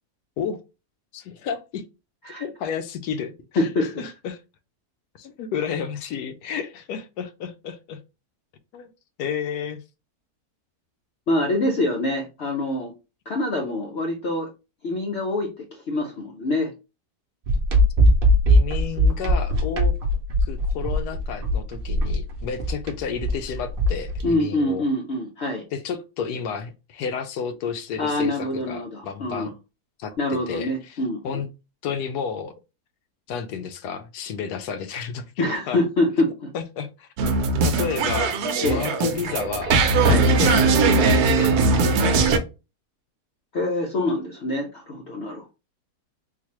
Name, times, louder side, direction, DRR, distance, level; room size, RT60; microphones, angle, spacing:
voice 1, 1.1-1.8 2.3-4.4 5.2-8.0 8.7-8.9 9.2-9.8 18.5-19.9 20.4-24.8 25.7-29.5 30.0-31.0 31.2-31.5 31.8-32.5 33.3-35.8 36.5-37.1 37.6-38.4 38.6-39.8 40.4-42.5, left 6 dB, 85° left, 1.1 m, -31 dB
voice 2, 3.6-4.0 11.3-12.9 13.3-14.5 14.8-16.7 24.2-25.6 28.0-29.5 30.2-31.2 35.4-36.5 38.6-38.8 40.0-40.3 43.5-45.5, left 1 dB, 60° left, 0.7 m, -25 dB
sound 1, 17.5-24.3, equal, 55° right, 0.6 m, -20 dB
sound 2, 37.2-42.4, right 3 dB, 75° right, 1.1 m, -20 dB
3.8 x 2.6 x 2.9 m
omnidirectional pair, 1.7 m